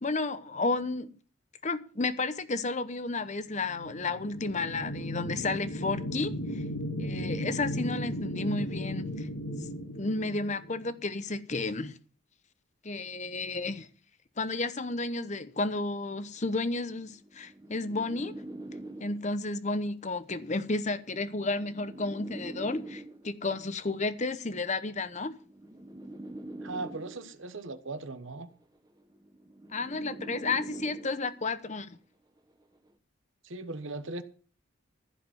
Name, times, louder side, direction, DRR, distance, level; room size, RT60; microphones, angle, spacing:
voice 1, 0.0-1.1 1.6-6.6 7.0-9.3 9.9-12.0 12.8-13.9 14.4-18.3 19.0-25.3 29.7-32.0, left 3 dB, 35° left, 0.9 m, -32 dB
sound 1, 3.5-11.2, equal, 75° left, 2.5 m, -36 dB
sound 2, 15.3-15.5 16.4-19.5 20.5-23.5 24.5-27.5 28.5-31.5 32.5-32.9, right 1 dB, 20° right, 1.1 m, -44 dB
voice 2, 26.6-28.5 33.4-34.2, right 2 dB, 65° right, 1.1 m, -38 dB
15.0 x 5.1 x 9.6 m
head